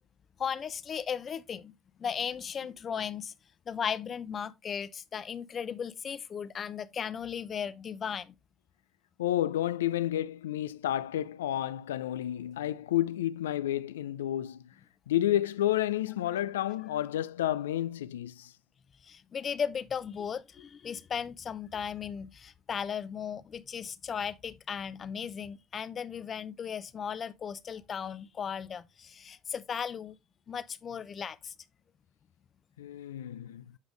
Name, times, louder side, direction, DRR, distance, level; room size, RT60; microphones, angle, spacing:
voice 1, 0.4-1.7 2.0-3.3 3.7-8.3 19.0-30.2 30.5-31.5, left 7 dB, 40° left, 0.6 m, -36 dB
voice 2, 9.2-14.7 15.1-18.5 32.8-33.8, left 12 dB, 90° left, 0.3 m, -30 dB
8.2 x 5.0 x 3.1 m
hypercardioid pair, 70°, 0 cm